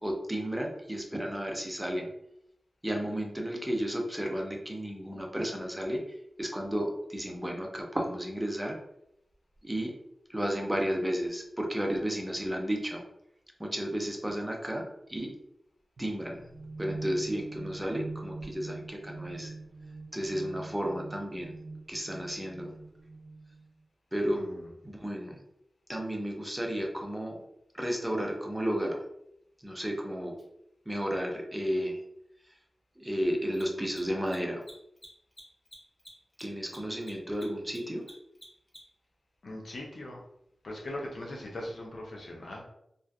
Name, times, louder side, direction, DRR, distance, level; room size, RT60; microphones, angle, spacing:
voice 1, 0.0-2.1 2.8-6.0 6.4-8.8 9.6-9.9 10.3-13.0 13.6-15.3 16.0-16.4 16.8-19.5 20.1-21.5 21.9-22.7 24.1-24.4 24.8-25.4 25.9-27.4 27.7-29.0 29.6-30.4 30.9-32.0 33.0-34.6 36.4-38.0, equal, 15° right, 1 dB, 0.6 m, -33 dB
sound 1, 16.0-23.7, right 3 dB, 85° right, 0.3 m, -43 dB
voice 2, 24.3-24.7 39.4-40.2 40.6-42.6, left 1 dB, 70° left, -2 dB, 0.6 m, -40 dB
Mechanisms, 30.4-30.5 33.4-39.1, equal, 35° left, 0.9 m, -51 dB
2.5 x 2.3 x 2.3 m, 0.79 s
cardioid pair, 40°, 0 cm